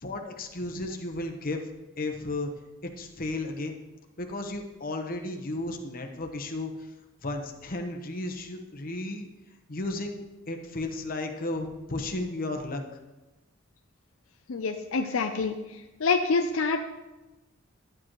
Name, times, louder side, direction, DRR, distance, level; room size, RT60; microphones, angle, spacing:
voice 1, 0.0-1.7 2.0-2.5 2.8-3.8 4.2-6.7 7.2-9.3 9.7-12.8, left 2 dB, 45° left, 4 dB, 1.0 m, -34 dB
voice 2, 14.5-15.6 16.0-16.8, left 4 dB, 75° left, 5 dB, 0.5 m, -26 dB
11.5 x 8.8 x 3.1 m, 1.1 s
head